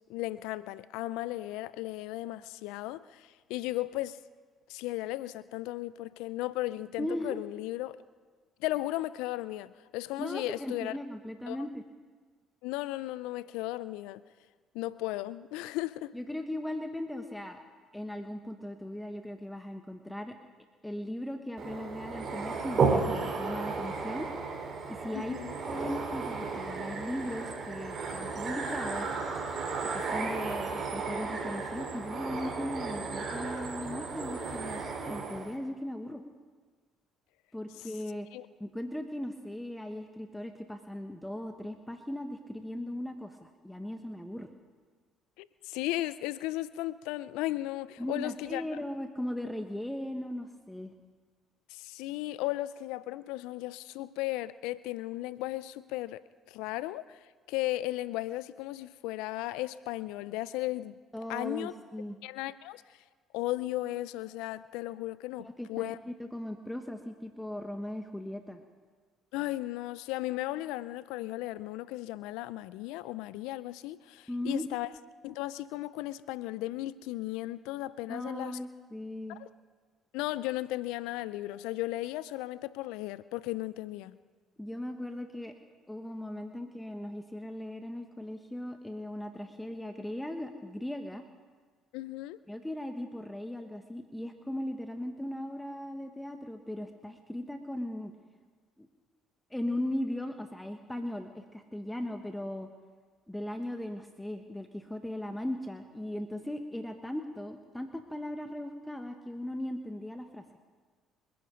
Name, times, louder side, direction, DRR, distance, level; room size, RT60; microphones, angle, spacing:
voice 1, 0.1-4.2 4.7-8.0 8.6-10.9 11.5-11.6 12.6-14.2 14.7-16.1 25.1-25.5 38.3-38.5 45.4-48.6 51.7-61.0 61.3-61.7 62.2-62.8 63.3-66.0 69.3-74.9 75.2-78.6 79.3-79.5 80.1-84.2 91.9-92.4, left 17 dB, 80° left, 0.4 m, -35 dB
voice 2, 7.0-7.4 10.2-11.8 16.1-17.6 17.9-20.4 20.8-24.3 24.9-25.4 25.7-29.1 29.9-36.2 37.5-38.3 38.6-44.5 48.0-50.9 61.1-62.2 65.4-68.6 74.3-74.7 78.1-79.4 84.6-85.5 85.9-91.2 92.5-98.1 98.8-98.9 99.5-102.7 103.3-110.4, left 1 dB, 5° left, 1.3 m, -38 dB
sound 1, 21.6-35.5, right 4 dB, 45° right, 3.7 m, -34 dB
26.5 x 10.5 x 5.2 m
hypercardioid pair, 60°, 0 cm